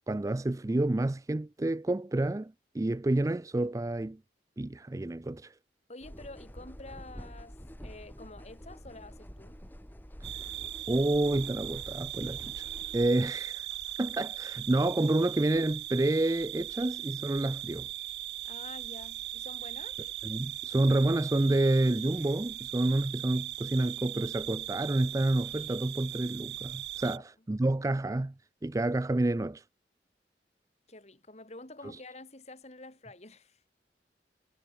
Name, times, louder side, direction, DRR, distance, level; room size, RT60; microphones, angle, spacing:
voice 1, 0.1-4.2 4.6-5.5 10.9-12.7 12.9-13.7 14.0-17.9 20.2-28.3 28.6-29.6, right 2 dB, 20° right, 0.4 m, -29 dB
voice 2, 5.9-9.6 18.4-20.0 27.1-27.2 30.9-33.6, left 2 dB, 40° left, 3.5 m, -48 dB
sound 1, 6.0-13.1, equal, 10° left, 6.4 m, -47 dB
sound 2, 10.2-27.2, right 13 dB, 65° right, 0.9 m, -39 dB
head